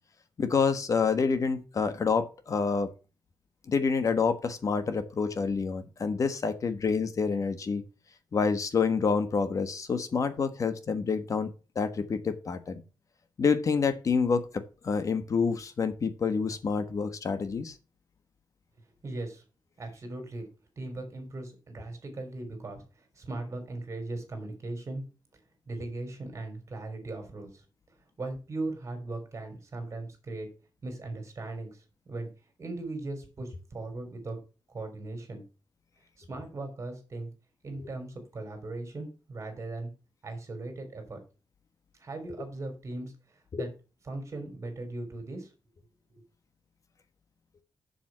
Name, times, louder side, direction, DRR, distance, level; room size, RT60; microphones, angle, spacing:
voice 1, 0.4-2.9 3.7-7.8 8.3-12.8 13.4-17.7 43.5-43.6, left 5 dB, 45° left, 10 dB, 1.2 m, -28 dB
voice 2, 19.0-19.4 19.8-20.4 20.8-25.0 25.7-27.6 28.2-30.5 30.8-32.3 32.6-34.4 34.7-35.4 36.2-37.3 37.6-39.9 40.2-41.2 42.0-43.7 44.1-45.5, right 2 dB, 35° right, 5 dB, 3.9 m, -38 dB
7.6 x 7.1 x 6.0 m, 0.32 s
wide cardioid pair, 175°, 8 cm